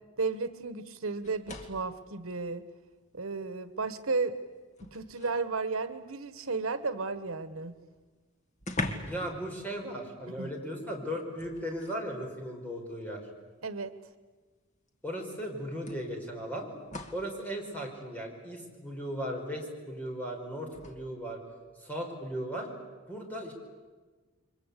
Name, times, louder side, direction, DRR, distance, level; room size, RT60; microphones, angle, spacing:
voice 1, 0.2-2.6 3.1-4.3 4.9-7.7 10.4-10.5 13.6-13.9, right 4 dB, 90° right, 12 dB, 1.4 m, -33 dB
sound 1, 1.2-2.0 3.3-3.4 3.9-5.5 7.6-7.7 7.9-8.0 8.6-9.3 9.6-9.8 11.3-12.1 13.2-13.3 14.9-15.0 15.9-17.3 20.7-21.0, left 1 dB, 35° left, 2.1 m, -40 dB
voice 2, 9.0-13.2 15.0-16.7 17.1-21.4 21.8-22.7 23.1-23.5, equal, 10° left, 0 dB, 5.0 m, -37 dB
29.5 x 24.0 x 8.4 m, 1.3 s
head